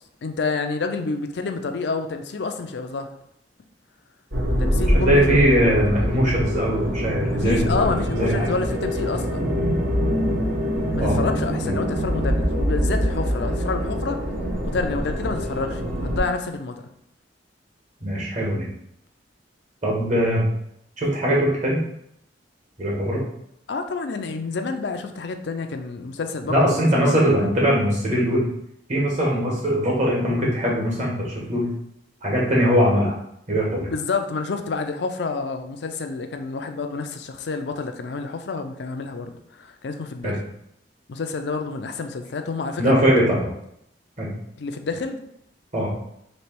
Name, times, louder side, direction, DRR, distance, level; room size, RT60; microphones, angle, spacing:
voice 1, 0.2-3.1 4.6-5.4 7.3-9.5 10.9-14.2 14.6-16.8 23.7-27.1 27.4-27.5 33.9-40.4 41.1-43.3 44.6-45.2, left 4 dB, 65° left, 6 dB, 0.4 m, -28 dB
sound 1, 4.3-16.2, equal, 65° right, 1.5 m, -24 dB
voice 2, 5.0-7.9 8.1-8.5 11.0-11.2 11.7-11.8 18.0-18.7 19.8-20.4 21.0-21.8 22.8-23.3 26.5-28.5 28.9-31.6 32.2-33.2 33.5-33.9 40.2-40.4 42.8-43.5 44.2-44.3 45.7-45.9, equal, 40° right, -4 dB, 1.4 m, -21 dB
3.2 x 2.9 x 4.5 m, 0.76 s
head